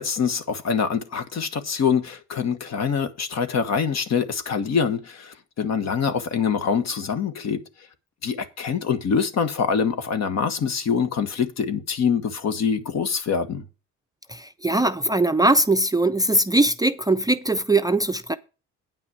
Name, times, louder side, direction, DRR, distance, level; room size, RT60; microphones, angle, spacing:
voice 1, 0.0-7.6 8.2-13.6, left 6 dB, 60° left, 1.4 m, -25 dB
voice 2, 14.3-18.4, right 2 dB, 15° right, 0.5 m, -21 dB
9.0 x 5.9 x 6.2 m
cardioid pair, 90°, 30 cm